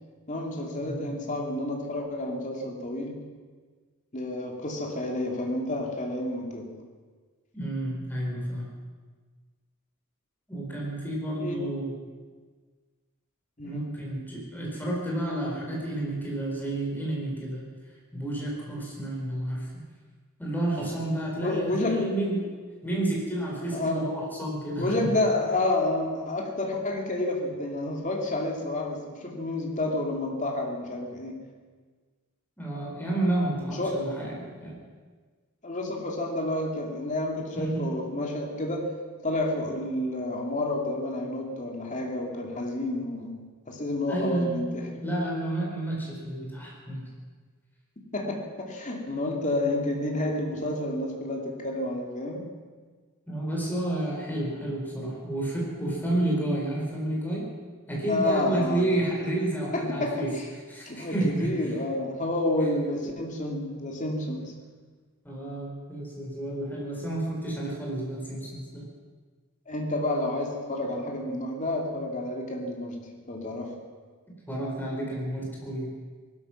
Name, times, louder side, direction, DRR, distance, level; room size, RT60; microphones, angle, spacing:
voice 1, 0.3-3.2 4.1-6.8 11.4-11.7 13.6-13.9 21.4-22.2 23.7-24.1 24.8-31.4 33.8-34.0 35.6-38.9 39.2-44.8 48.1-52.5 58.1-59.0 59.7-60.4 60.9-64.5 69.7-73.8, left 1 dB, 35° left, 0 dB, 2.6 m, -30 dB
voice 2, 0.8-1.1 7.5-8.7 10.5-11.9 13.6-17.7 18.1-19.7 20.4-22.5 22.8-25.1 32.6-34.8 37.5-37.9 44.1-44.7 45.0-47.0 53.3-57.5 57.9-60.3 60.7-61.7 65.2-68.9 74.5-75.9, right 1 dB, 10° left, -3 dB, 4.4 m, -30 dB
18.5 x 13.0 x 5.9 m, 1.5 s
head